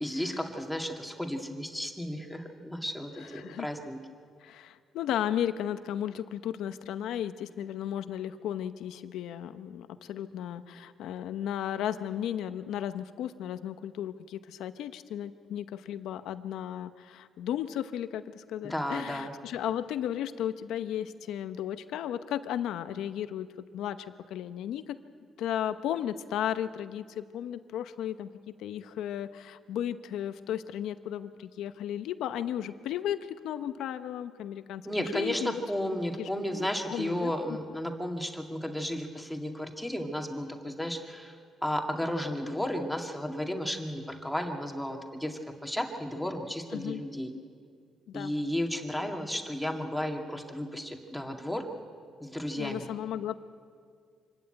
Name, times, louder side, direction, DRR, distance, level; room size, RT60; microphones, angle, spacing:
voice 1, 0.0-4.0 18.6-19.3 34.9-47.3 48.1-51.7 52.2-52.9, equal, 5° left, 2 dB, 2.1 m, -33 dB
voice 2, 3.4-3.7 4.4-23.5 23.7-25.0 25.4-35.6 36.2-37.6 46.7-47.0 48.1-48.3 52.6-53.4, left 10 dB, 85° left, 11 dB, 0.9 m, -35 dB
25.5 x 12.5 x 8.9 m, 2.1 s
cardioid pair, 90°, 0 cm